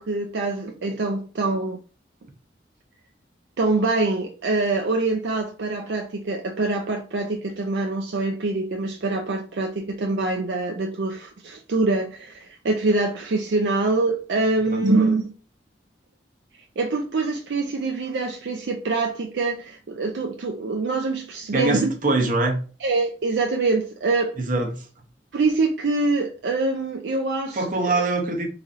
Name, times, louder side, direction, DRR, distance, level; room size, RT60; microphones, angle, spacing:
voice 1, 0.0-1.8 3.6-15.3 16.8-21.9 22.8-24.3 25.3-28.1, right 3 dB, 70° right, 0.4 m, -24 dB
voice 2, 21.5-22.6 24.4-24.8 27.5-28.5, right 2 dB, 50° right, 0.8 m, -23 dB
4.0 x 3.0 x 2.5 m
head